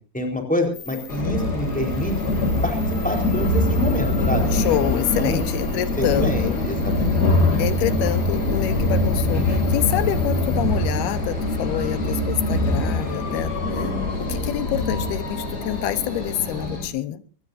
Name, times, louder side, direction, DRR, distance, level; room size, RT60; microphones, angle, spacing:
voice 1, 0.1-2.1 2.6-2.8 3.0-4.5 4.9-5.4 6.0-7.3, left 1 dB, ahead, 3 dB, 3.7 m, -27 dB
sound 1, 0.7-10.6, left 4 dB, 55° left, 4.8 m, -39 dB
Driving the Tram, 1.1-16.9, left 2 dB, 30° left, 2.4 m, -23 dB
sound 2, 1.1-16.7, right 4 dB, 55° right, 5.1 m, -43 dB
voice 2, 4.5-6.6 7.6-17.2, left 13 dB, 75° left, 13 dB, 2.9 m, -27 dB
24.0 x 19.0 x 2.7 m, 0.36 s
omnidirectional pair, 4.8 m